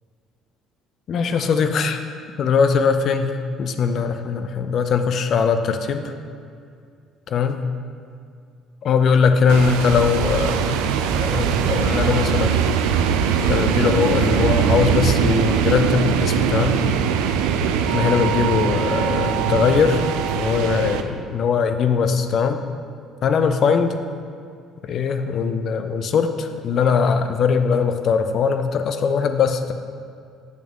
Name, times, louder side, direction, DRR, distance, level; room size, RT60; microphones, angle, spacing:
voice 1, 1.1-2.0 2.4-3.3 3.6-6.1 7.3-7.6 8.8-10.7 11.1-12.6 13.4-16.8 17.9-20.0 20.3-22.6 23.2-24.0 24.8-29.7, left 6 dB, 55° left, 8 dB, 0.5 m, -20 dB
sound 1, 9.5-21.0, right 7 dB, 80° right, 0.4 m, -21 dB
8.1 x 7.0 x 3.0 m, 2.3 s
hypercardioid pair, 65°, 0 cm